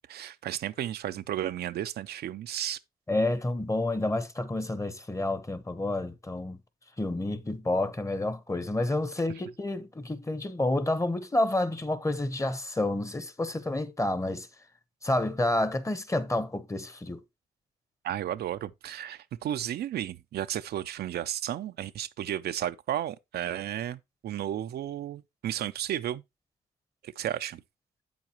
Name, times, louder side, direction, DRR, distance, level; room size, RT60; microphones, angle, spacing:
voice 1, 0.1-2.8 18.0-26.2 27.0-27.6, right 11 dB, 80° right, 0.4 m, -33 dB
voice 2, 3.1-6.6 7.0-14.5 15.0-17.2, left 2 dB, 20° left, 0.9 m, -29 dB
8.0 x 7.3 x 2.9 m
cardioid pair, 70°, 16 cm